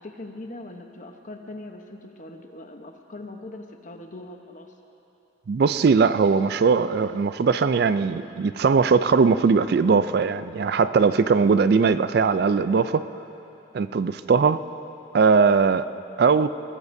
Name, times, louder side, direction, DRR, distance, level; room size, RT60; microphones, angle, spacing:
voice 1, 0.0-4.7, left 2 dB, 40° left, 4 dB, 1.0 m, -41 dB
voice 2, 5.5-13.0 13.7-14.6 15.1-15.9 16.2-16.6, right 5 dB, 55° right, 13 dB, 0.3 m, -20 dB
21.5 x 19.0 x 2.7 m, 2.9 s
head